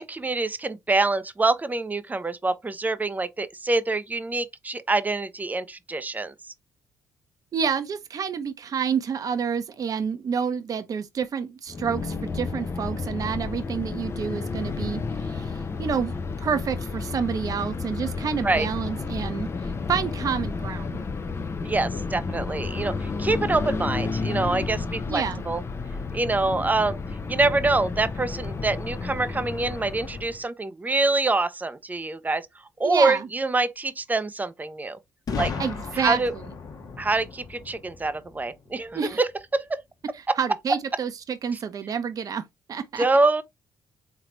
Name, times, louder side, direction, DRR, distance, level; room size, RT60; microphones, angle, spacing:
voice 1, 0.0-6.3 18.4-18.7 21.6-25.6 26.1-27.0 27.3-32.5 32.8-35.0 35.4-35.5 35.9-36.3 37.0-39.8 40.3-40.4 43.0-43.4, right 3 dB, 20° right, 0.7 m, -25 dB
voice 2, 7.5-15.5 15.8-19.5 19.9-21.0 25.1-25.4 32.8-33.3 35.6-36.4 38.9-39.2 40.4-42.4 42.7-43.0, right 6 dB, 55° right, 0.8 m, -28 dB
sound 1, 11.7-30.4, left 4 dB, 35° left, 0.7 m, -31 dB
Boom, 35.3-39.1, left 5 dB, 55° left, 1.3 m, -35 dB
3.7 x 3.4 x 3.0 m
supercardioid pair, 60°, 7 cm